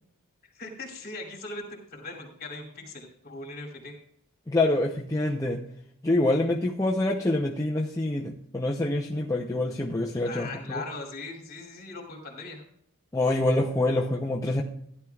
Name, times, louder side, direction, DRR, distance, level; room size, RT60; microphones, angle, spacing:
voice 1, 0.5-3.9 10.2-12.6, left 3 dB, 45° left, -1 dB, 2.8 m, -39 dB
voice 2, 4.5-5.6 6.0-10.8 13.1-14.6, left 2 dB, 15° left, -2 dB, 0.6 m, -26 dB
15.5 x 10.5 x 2.4 m, 0.71 s
head